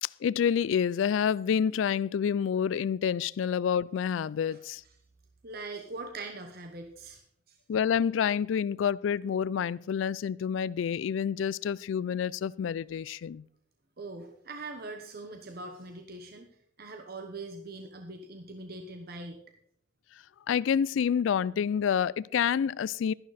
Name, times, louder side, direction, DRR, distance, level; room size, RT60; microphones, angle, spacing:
voice 1, 0.0-4.8 7.7-13.4 20.5-23.1, left 7 dB, 85° left, 0.3 m, -28 dB
voice 2, 5.4-7.6 14.0-16.5 16.8-19.4, right 3 dB, 55° right, 1.1 m, -42 dB
12.5 x 11.5 x 4.2 m
head